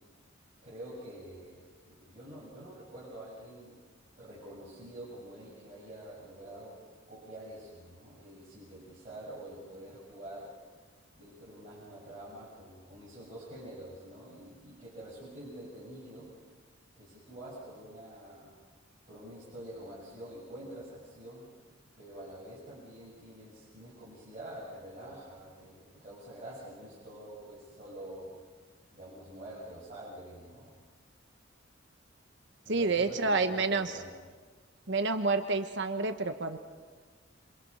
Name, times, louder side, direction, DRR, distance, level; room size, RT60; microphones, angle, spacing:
voice 1, 0.6-1.6 1.9-3.8 4.2-6.8 7.1-10.5 11.2-16.3 16.9-18.6 19.1-21.5 22.0-28.3 28.9-30.8 32.6-34.1, right 1 dB, 35° right, -9 dB, 7.2 m, -47 dB
voice 2, 32.7-33.9 34.9-36.6, right 3 dB, 60° right, 7 dB, 1.3 m, -29 dB
28.0 x 28.0 x 5.7 m, 1.5 s
head